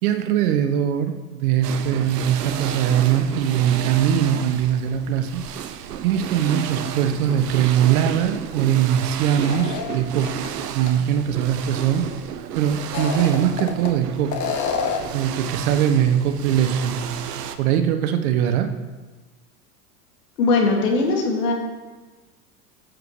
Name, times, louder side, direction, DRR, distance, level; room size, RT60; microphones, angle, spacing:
voice 1, 0.0-5.4 6.0-12.1 12.5-14.3 15.1-17.3 17.6-18.7, right 9 dB, 65° right, 7 dB, 1.1 m, -21 dB
sound 1, 1.6-17.6, right 9 dB, 80° right, 0.8 m, -32 dB
sound 2, 9.4-10.5 10.9-11.0 12.8-13.9 14.3-15.2, left 6 dB, 40° left, 1.4 m, -27 dB
voice 2, 20.4-21.5, left 3 dB, 75° left, 0 dB, 2.5 m, -20 dB
15.0 x 7.7 x 3.2 m, 1.3 s
hypercardioid pair, 85°, 47 cm